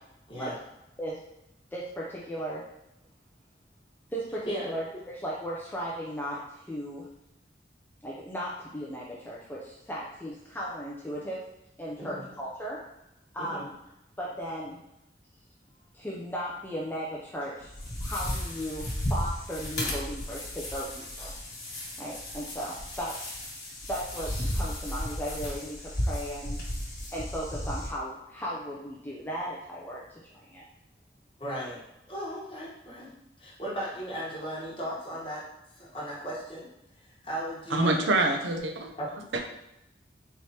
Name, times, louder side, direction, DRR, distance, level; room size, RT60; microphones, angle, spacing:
voice 1, 1.7-2.6 4.1-7.1 8.0-11.4 11.8-12.8 13.3-13.7 14.2-14.8 15.9-17.7 18.0-21.4 22.0-23.1 23.9-26.6 27.1-30.6, equal, 10° left, -5 dB, 0.4 m, -36 dB
sound 1, 17.6-27.9, left 1 dB, 45° left, 1.4 m, -34 dB
voice 2, 31.4-31.8 32.1-33.1 33.4-35.4 35.8-36.7 37.0-38.1 39.0-39.1, equal, 30° left, -6 dB, 1.2 m, -36 dB
voice 3, 37.7-38.9 39.3-39.4, right 2 dB, 85° right, 3 dB, 0.6 m, -25 dB
4.5 x 3.3 x 2.8 m, 0.87 s
head